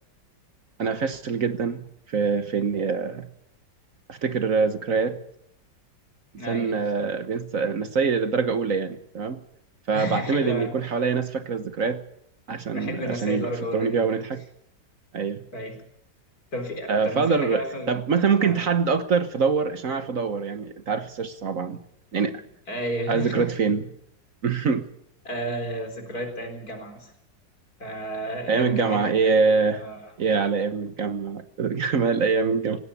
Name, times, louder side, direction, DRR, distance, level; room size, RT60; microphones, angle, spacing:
voice 1, 0.8-3.3 4.1-5.2 6.5-9.4 9.9-12.0 12.5-14.4 15.1-15.4 16.9-21.8 22.1-22.4 23.1-23.8 24.4-24.9 28.5-29.8 30.2-32.8, right 5 dB, 50° right, 10 dB, 1.4 m, -24 dB
voice 2, 6.4-6.9 9.9-10.7 12.5-14.0 15.5-15.8 16.5-18.0 18.4-18.7 22.7-23.5 25.2-27.1 27.8-29.3 29.7-30.1, equal, 55° left, 5 dB, 4.5 m, -32 dB
18.5 x 17.0 x 8.3 m, 0.73 s
omnidirectional pair, 1.9 m